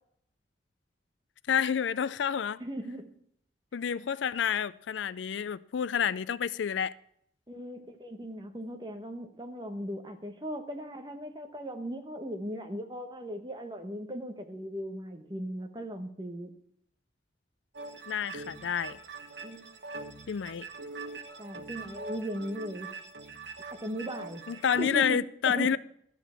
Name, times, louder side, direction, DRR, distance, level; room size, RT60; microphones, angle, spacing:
voice 1, 1.5-2.6 3.7-6.9 18.1-19.0 20.3-20.7 24.5-25.8, left 7 dB, 80° left, 0.4 m, -29 dB
voice 2, 2.6-3.1 7.5-16.5 19.4-19.7 21.4-22.9 23.7-25.8, equal, 25° right, 1.1 m, -38 dB
sound 1, 17.7-24.9, right 3 dB, 70° right, 1.2 m, -43 dB
12.0 x 7.1 x 5.7 m
head